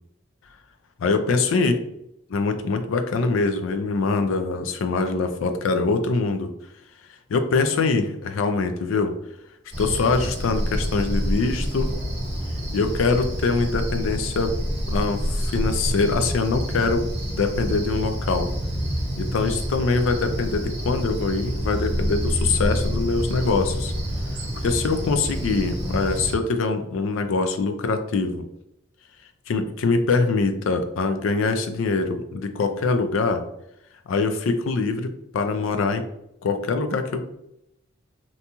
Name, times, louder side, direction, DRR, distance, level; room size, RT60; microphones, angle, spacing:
voice 1, 1.0-1.7 2.3-6.5 7.3-9.1 9.8-12.0 12.7-14.5 14.9-17.1 17.3-18.5 19.2-23.9 24.6-28.4 29.5-33.4 34.1-36.0 36.4-37.2, left 4 dB, 85° left, 8 dB, 0.4 m, -23 dB
Cricket, 9.7-26.3, equal, 30° right, 0.9 m, -27 dB
2.8 x 2.7 x 2.2 m, 0.82 s
head